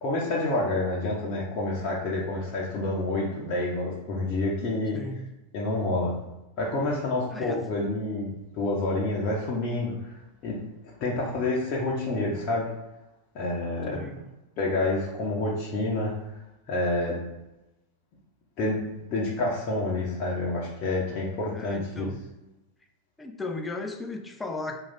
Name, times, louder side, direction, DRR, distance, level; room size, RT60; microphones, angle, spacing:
voice 1, 0.0-5.0 5.5-6.1 6.6-8.3 8.5-10.6 11.0-12.7 13.3-14.1 14.6-16.1 16.7-17.2 18.6-18.8 19.1-22.1, left 2 dB, 40° left, -4 dB, 0.7 m, -28 dB
voice 2, 4.9-5.3 7.3-7.6 11.0-11.4 13.9-14.2 21.5-22.2 23.2-24.8, left 2 dB, 10° left, 4 dB, 0.3 m, -36 dB
3.0 x 2.4 x 3.9 m, 0.97 s
figure-of-eight pair, 90°, 0 cm